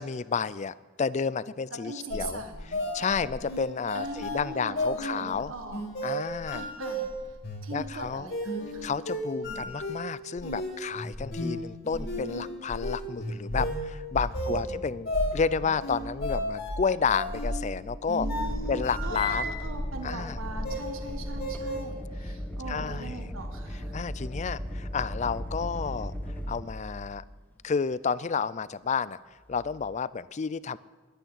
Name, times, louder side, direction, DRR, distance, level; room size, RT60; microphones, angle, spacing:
voice 1, 0.0-2.4 2.9-5.5 6.0-6.7 7.7-8.3 8.8-18.3 18.7-19.5 20.0-20.4 22.7-23.1 23.9-26.1 26.5-27.2 27.6-29.2 29.5-30.8, left 5 dB, 35° left, 18 dB, 0.4 m, -31 dB
voice 2, 1.8-2.8 3.9-5.8 6.1-9.0 9.3-9.7 14.5-15.8 18.2-24.0, right 2 dB, 80° right, 5 dB, 1.6 m, -41 dB
sound 1, 2.1-20.0 20.3-21.8, equal, 55° left, 3.3 m, -34 dB
sound 2, 18.3-27.5 29.5-29.9, equal, 10° left, 1.5 m, -37 dB
12.0 x 10.0 x 10.0 m, 1.4 s
head